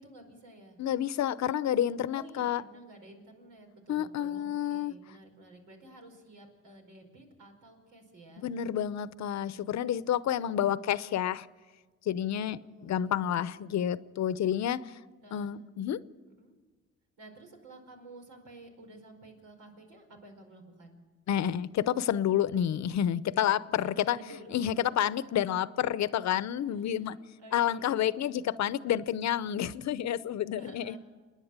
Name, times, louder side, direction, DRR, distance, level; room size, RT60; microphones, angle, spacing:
voice 1, 0.0-0.8 2.1-8.5 12.6-13.6 15.2-15.5 16.4-16.5 17.2-21.0 23.8-25.1 26.7-28.6 30.6-31.0, right 1 dB, 90° right, 3 dB, 5.0 m, -52 dB
voice 2, 0.8-2.6 3.9-4.9 8.4-11.5 12.1-14.9 15.3-16.0 21.3-24.2 24.5-27.2 27.5-31.0, left 10 dB, 65° left, 16 dB, 0.8 m, -29 dB
28.5 x 10.5 x 8.8 m, 1.4 s
cardioid pair, 90°, 30 cm